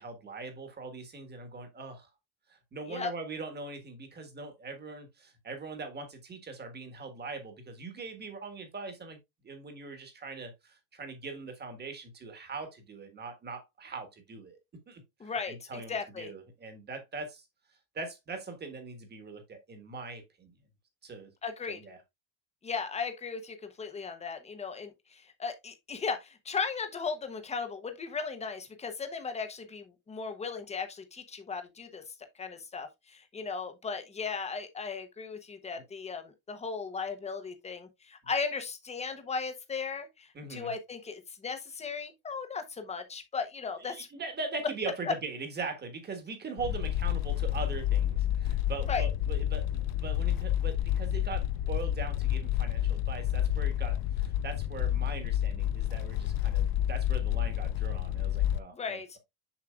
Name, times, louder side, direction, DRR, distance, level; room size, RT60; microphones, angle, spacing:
voice 1, 0.0-2.1 2.5-9.2 9.4-14.6 14.9-17.5 17.9-20.5 21.0-21.3 21.7-22.0 40.3-40.7 43.8-59.0, right 4 dB, 20° right, 1.5 m, -41 dB
voice 2, 15.2-16.3 21.4-21.8 22.6-32.0 32.4-44.1 48.9-49.0 58.7-59.2, left 5 dB, 15° left, 0.8 m, -36 dB
sound 1, 46.6-58.6, left 12 dB, 60° left, 0.6 m, -29 dB
7.2 x 6.3 x 2.3 m
cardioid pair, 180°, 48 cm